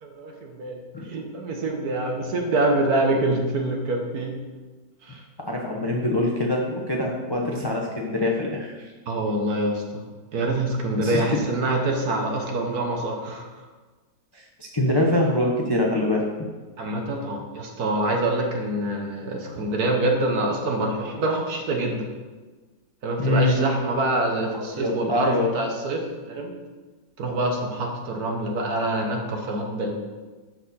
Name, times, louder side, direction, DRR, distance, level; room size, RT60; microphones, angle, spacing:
voice 1, 0.0-0.8 1.0-4.4 5.0-5.2 9.1-10.0 10.3-13.5 16.8-22.0 23.0-26.5 27.2-29.9, right 2 dB, 60° right, 2 dB, 1.4 m, -25 dB
voice 2, 5.5-8.9 11.0-11.4 14.3-16.5 23.2-23.6 24.5-25.5, left 1 dB, 25° left, -1 dB, 0.5 m, -24 dB
12.5 x 4.4 x 4.2 m, 1.3 s
omnidirectional pair, 2.0 m